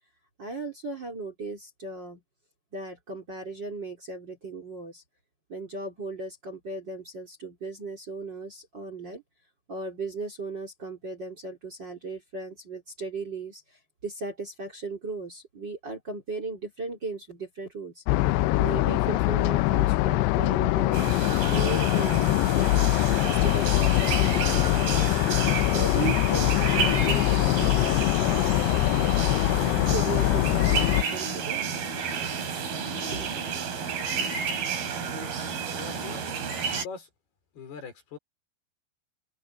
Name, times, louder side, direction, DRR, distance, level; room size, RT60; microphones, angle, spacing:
voice 1, 0.4-2.2 2.7-5.0 5.5-9.2 9.7-18.0 18.6-21.2 21.5-25.2 25.7-29.1 29.8-31.6 33.1-33.4, right 3 dB, 30° right, 3.2 m, -37 dB
sound 1, 18.1-31.0, left 18 dB, 80° left, 2.7 m, -23 dB
sound 2, 20.9-36.9, right 6 dB, 60° right, 5.3 m, -31 dB
voice 2, 35.8-36.2 36.7-37.1 37.6-38.2, left 5 dB, 65° left, 6.9 m, -41 dB
omnidirectional pair, 4.9 m